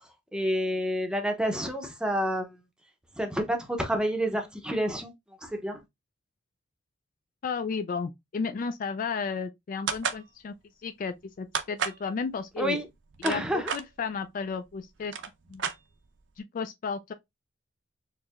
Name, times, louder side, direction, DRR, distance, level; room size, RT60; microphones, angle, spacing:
voice 1, 0.3-2.6 3.2-5.1 5.4-5.8 12.6-12.8 13.2-13.7, equal, 5° right, 0.7 m, -29 dB
voice 2, 7.4-10.5 10.8-12.8 13.2-15.1 15.5-15.6 16.4-17.1, left 5 dB, 45° left, 0.3 m, -33 dB
sound 1, 9.9-10.2 11.5-12.0 12.9-13.8 14.7-14.8 15.0-16.2, right 6 dB, 65° right, 0.6 m, -31 dB
4.5 x 2.9 x 2.4 m
head